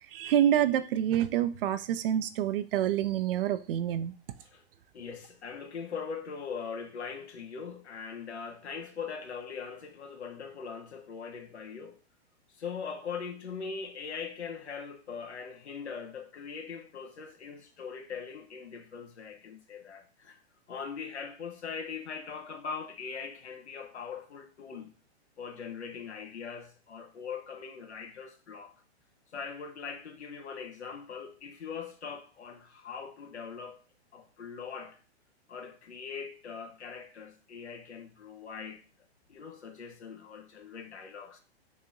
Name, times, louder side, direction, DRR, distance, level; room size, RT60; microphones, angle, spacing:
voice 1, 0.1-4.1, right 11 dB, 55° right, 0.5 m, -27 dB
voice 2, 4.9-12.0 12.6-20.4 20.7-24.9 25.4-28.7 29.3-33.8 34.1-35.0 35.5-38.8 39.3-41.4, left 6 dB, 80° left, 1.1 m, -41 dB
4.1 x 2.8 x 3.7 m
hypercardioid pair, 125°, 33 cm